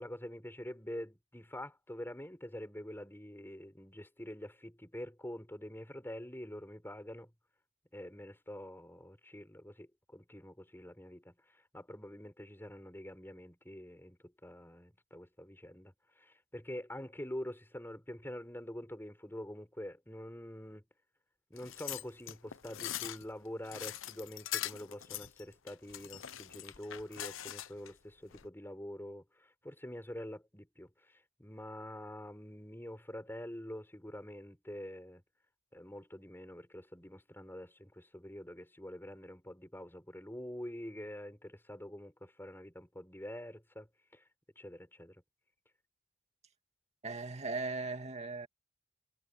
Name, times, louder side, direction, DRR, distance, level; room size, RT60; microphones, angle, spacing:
voice 1, 0.0-7.3 7.9-11.3 11.7-20.9 21.5-35.2 35.7-44.2 44.6-45.2, left 1 dB, 10° left, 5.4 m, -46 dB
sound 1, 21.6-27.9 28.3-28.5, left 12 dB, 90° left, 0.8 m, -42 dB
voice 2, 47.0-48.5, right 3 dB, 35° right, 2.1 m, -38 dB
head